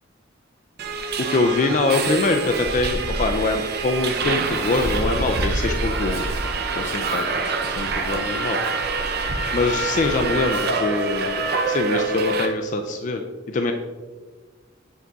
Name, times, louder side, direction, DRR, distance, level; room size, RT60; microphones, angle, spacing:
Subway metro underground, 0.8-12.5, right 3 dB, 55° right, 0.6 m, -25 dB
voice 1, 1.3-6.3 6.8-8.6 9.5-13.7, left 3 dB, 40° left, 5 dB, 0.4 m, -24 dB
7.4 x 3.5 x 3.9 m, 1.3 s
head